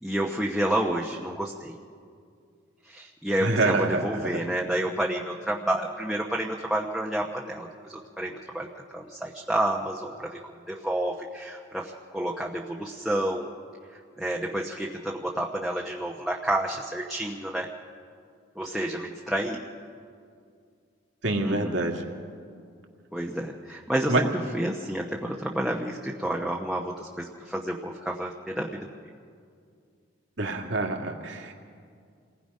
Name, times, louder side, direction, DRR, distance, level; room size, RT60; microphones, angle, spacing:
voice 1, 0.0-1.8 2.9-10.4 10.7-13.5 14.2-17.7 18.5-19.7 21.4-21.8 23.1-28.9, right 1 dB, ahead, -2 dB, 1.0 m, -30 dB
voice 2, 3.4-4.4 21.2-22.1 24.1-24.2 30.4-31.6, right 2 dB, 70° right, 2 dB, 2.2 m, -26 dB
27.5 x 19.5 x 5.5 m, 2.2 s
head